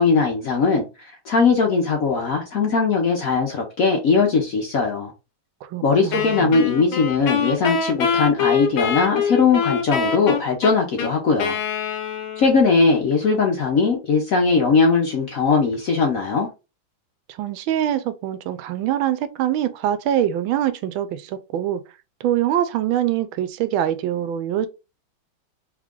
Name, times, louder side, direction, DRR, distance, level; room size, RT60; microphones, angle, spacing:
voice 1, 0.0-5.1 5.8-11.6 12.4-16.5, left 4 dB, 60° left, 0.9 m, -19 dB
voice 2, 5.6-6.6 17.4-21.8 22.2-24.7, right 11 dB, 80° right, 1.3 m, -24 dB
Wind instrument woodwind instrument, 6.1-12.7, left 6 dB, 75° left, 1.6 m, -24 dB
3.6 x 3.2 x 3.6 m
omnidirectional pair, 2.2 m